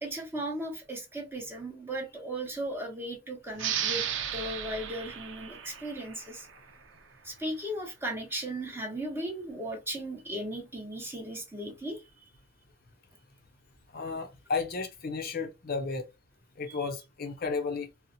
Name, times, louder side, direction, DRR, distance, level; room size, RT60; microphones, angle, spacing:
voice 1, 0.0-4.0 4.3-6.5 7.2-12.0 16.7-16.8, right 1 dB, 10° right, 1.0 m, -36 dB
sound 1, 3.5-6.8, right 9 dB, 75° right, 0.6 m, -35 dB
voice 2, 13.9-16.0 16.6-17.9, left 4 dB, 50° left, 0.6 m, -33 dB
4.0 x 2.1 x 2.6 m
head